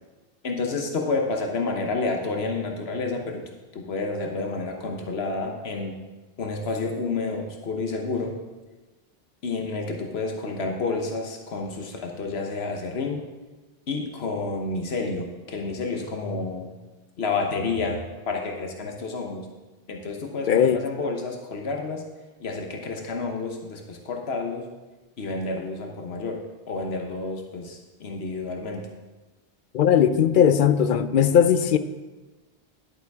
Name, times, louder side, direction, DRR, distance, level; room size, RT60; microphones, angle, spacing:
voice 1, 0.4-3.4 3.7-6.0 6.4-8.4 9.4-13.2 13.9-16.7 17.2-19.5 19.9-22.0 22.4-24.7 25.2-28.8, left 3 dB, 90° left, 2 dB, 1.3 m, -30 dB
voice 2, 20.5-20.8 29.7-31.8, left 8 dB, 60° left, 12 dB, 0.6 m, -18 dB
10.5 x 8.8 x 3.5 m, 1.2 s
omnidirectional pair, 1.0 m